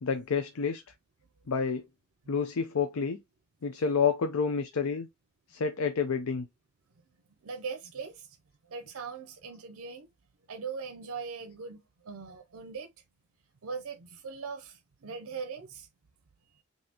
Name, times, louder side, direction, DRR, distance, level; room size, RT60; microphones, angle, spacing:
voice 1, 0.0-0.8 1.5-1.8 2.3-3.2 3.6-5.1 5.5-6.5, left 5 dB, 80° left, 0.5 m, -29 dB
voice 2, 7.4-8.4 8.7-10.1 10.5-12.9 13.6-15.9, right 5 dB, 85° right, 0.6 m, -40 dB
5.4 x 2.7 x 2.8 m
head